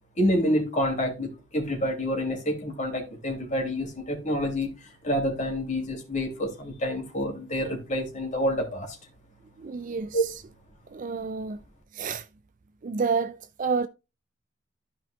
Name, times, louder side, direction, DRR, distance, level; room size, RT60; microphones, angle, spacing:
voice 1, 0.2-9.0 10.1-10.2, equal, 35° left, 2.9 m, -28 dB
voice 2, 9.6-10.3 10.9-11.6 11.9-12.3 12.8-13.9, right 5 dB, 40° right, 0.4 m, -29 dB
14.5 x 5.2 x 2.4 m
head